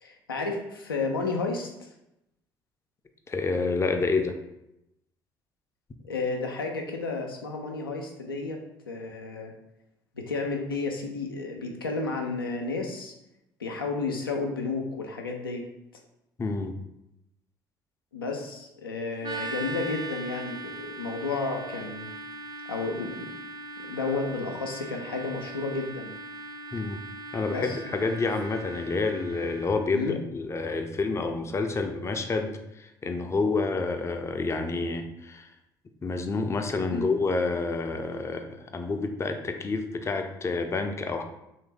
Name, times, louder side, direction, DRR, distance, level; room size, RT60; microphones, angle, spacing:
voice 1, 0.0-1.9 6.0-9.5 10.2-13.1 13.6-15.6 18.1-22.1 22.7-23.3 23.9-26.1 27.5-27.8 29.9-30.2 36.9-37.0, left 3 dB, 90° left, 2 dB, 0.4 m, -32 dB
voice 2, 3.3-4.3 16.4-16.7 26.7-27.0 27.3-35.5 36.0-41.2, left 3 dB, 25° left, 6 dB, 0.4 m, -28 dB
sound 1, 19.2-29.8, right 2 dB, 35° right, 0.4 m, -40 dB
3.2 x 2.5 x 3.3 m, 0.86 s
figure-of-eight pair, 55°, 12 cm